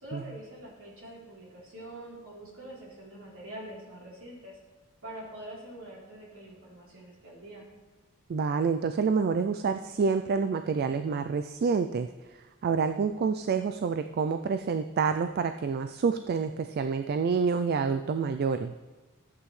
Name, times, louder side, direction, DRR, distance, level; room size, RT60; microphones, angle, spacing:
voice 1, 0.0-4.6 5.0-7.7, right 1 dB, 65° right, -5 dB, 3.5 m, -45 dB
voice 2, 8.3-12.1 12.6-18.7, right 5 dB, 45° right, 8 dB, 0.3 m, -28 dB
14.0 x 8.3 x 3.2 m, 1.3 s
head